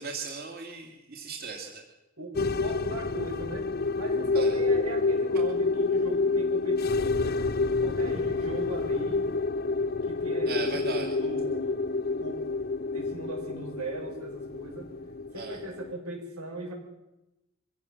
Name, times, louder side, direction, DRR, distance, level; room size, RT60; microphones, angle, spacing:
voice 1, 0.0-1.8 4.3-4.5 10.5-11.1 15.3-15.6, right 4 dB, 45° right, 2 dB, 2.7 m, -37 dB
voice 2, 2.2-3.6 4.0-7.4 7.8-9.3 10.1-11.8 12.2-12.4 12.9-14.9 15.3-16.7, right 1 dB, 90° right, 1 dB, 7.2 m, -38 dB
sound 1, 2.3-15.9, left 3 dB, 45° left, 0.8 m, -28 dB
24.0 x 17.0 x 7.4 m, 0.96 s
head